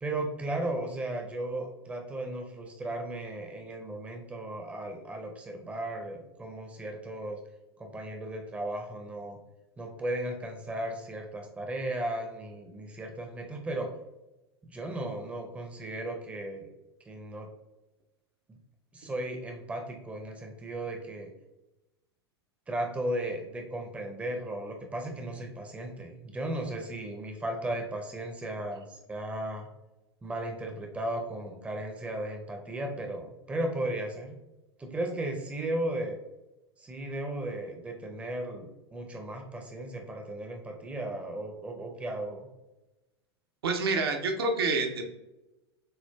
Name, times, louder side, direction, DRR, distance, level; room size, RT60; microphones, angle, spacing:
voice 1, 0.0-7.4 7.8-9.4 9.8-14.0 14.6-16.7 17.1-17.5 18.5-18.6 18.9-21.3 22.7-29.7 30.2-34.4 34.8-36.2 36.8-42.5, right 1 dB, 10° right, 3 dB, 0.6 m, -35 dB
voice 2, 43.6-45.1, right 3 dB, 65° right, 3 dB, 0.6 m, -27 dB
6.6 x 2.4 x 2.2 m, 1.0 s
figure-of-eight pair, 90°, 14 cm